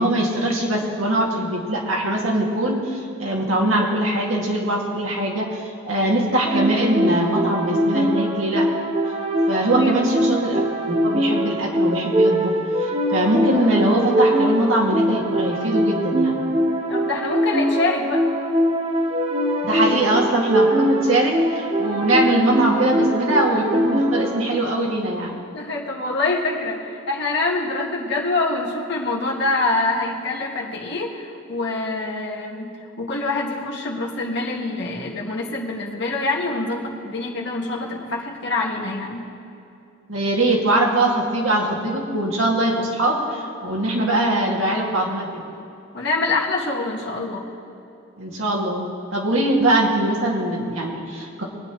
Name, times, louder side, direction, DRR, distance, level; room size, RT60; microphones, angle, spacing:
voice 1, 0.0-8.7 9.5-16.4 19.6-25.3 40.1-45.4 48.2-51.4, right 1 dB, 80° right, -2 dB, 2.3 m, -22 dB
sound 1, 6.5-24.6, equal, 30° right, 0.8 m, -22 dB
voice 2, 9.8-10.2 16.9-18.2 25.5-32.7 33.0-39.3 45.9-47.5, left 3 dB, 55° left, -2 dB, 1.9 m, -25 dB
23.5 x 9.8 x 3.1 m, 2.7 s
head